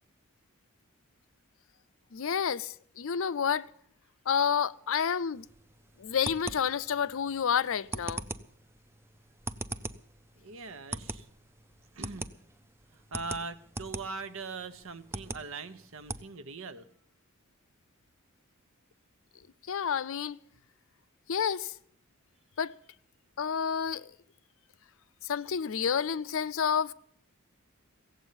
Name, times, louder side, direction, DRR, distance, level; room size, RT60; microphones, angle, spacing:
voice 1, 2.1-3.7 4.3-5.5 6.0-8.2 19.7-20.4 21.3-21.7 22.6-22.7 23.4-24.1 25.2-26.9, left 7 dB, 65° left, 0.5 m, -29 dB
sound 1, 5.4-16.2, right 2 dB, 10° right, 0.5 m, -42 dB
voice 2, 10.4-11.3 11.9-12.3 12.9-16.9, right 4 dB, 70° right, 1.0 m, -41 dB
16.5 x 7.9 x 9.7 m
head